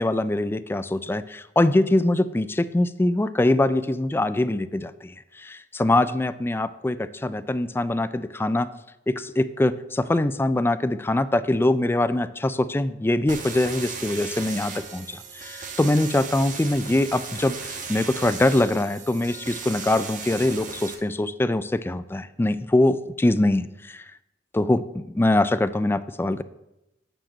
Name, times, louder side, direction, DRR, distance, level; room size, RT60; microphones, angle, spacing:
voice 1, 0.0-8.7 9.1-24.0 24.5-26.4, left 1 dB, 10° left, 14 dB, 0.3 m, -23 dB
sound 1, 13.3-20.9, right 5 dB, 45° right, 1.3 m, -36 dB
8.8 x 5.0 x 7.3 m, 0.91 s
head